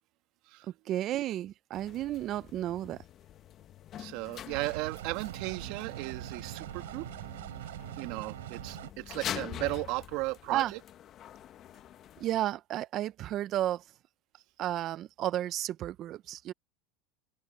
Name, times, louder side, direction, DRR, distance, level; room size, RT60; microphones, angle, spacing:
voice 1, 0.8-3.0 10.5-10.7 12.2-13.8 14.6-16.5, right 13 dB, 45° right, 0.8 m, -32 dB
sound 1, 1.7-12.4, left 11 dB, 45° left, 1.2 m, -45 dB
voice 2, 4.0-7.1 8.0-10.6, right 22 dB, 65° right, 2.1 m, -36 dB
sound 2, 4.5-8.9, right 15 dB, 90° right, 6.1 m, -42 dB
open air
supercardioid pair, 110°, 0 cm